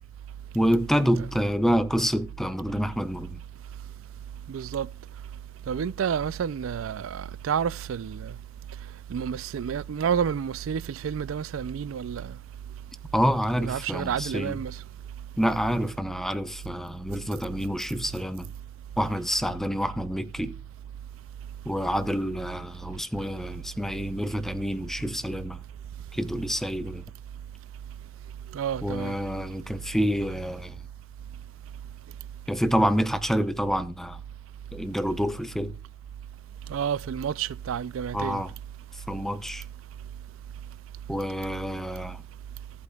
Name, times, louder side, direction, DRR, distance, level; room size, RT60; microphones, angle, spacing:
voice 1, 0.5-3.4 13.1-14.6 15.4-18.5 19.0-20.5 21.6-25.6 26.1-27.0 28.8-30.8 32.5-34.2 34.7-35.7 38.1-38.5 39.1-39.6 41.1-42.2, equal, ahead, 0.7 m, -27 dB
voice 2, 4.5-4.9 5.7-8.3 9.1-12.3 13.6-14.8 28.5-29.2 36.7-38.4, right 7 dB, 90° right, 0.4 m, -30 dB
15.0 x 8.4 x 2.3 m
head